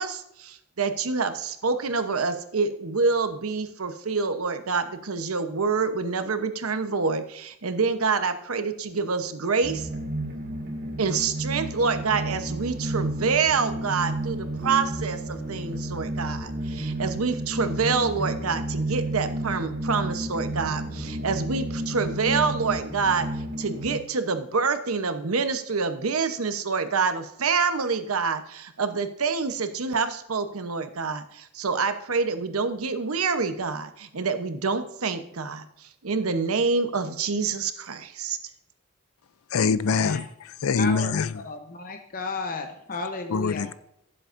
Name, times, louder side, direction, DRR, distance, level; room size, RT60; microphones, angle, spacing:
voice 1, 0.0-9.9 11.0-38.4, right 4 dB, 85° right, 0.9 m, -27 dB
sound 1, 9.6-24.0, right 1 dB, 55° right, 3.4 m, -31 dB
voice 2, 39.5-41.4 43.3-43.7, left 5 dB, 80° left, 0.5 m, -24 dB
voice 3, 40.8-43.6, left 3 dB, 40° left, 0.8 m, -34 dB
15.0 x 7.7 x 2.6 m
head